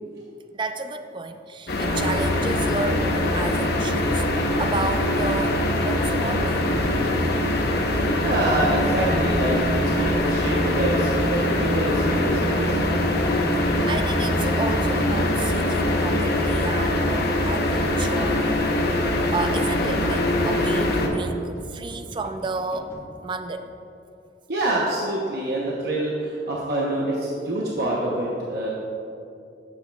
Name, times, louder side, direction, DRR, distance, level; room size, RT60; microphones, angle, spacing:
voice 1, 0.5-7.1 13.6-18.5 19.3-23.0 23.2-23.7, right 3 dB, 30° right, 8 dB, 0.4 m, -32 dB
sound 1, 1.7-21.1, left 1 dB, 65° left, 0.8 m, -23 dB
voice 2, 8.2-12.9 24.5-28.7, right 1 dB, 65° right, -4 dB, 0.9 m, -26 dB
sound 2, 8.6-23.0, equal, 15° left, 1.3 m, -43 dB
11.5 x 7.1 x 2.3 m, 2.6 s
head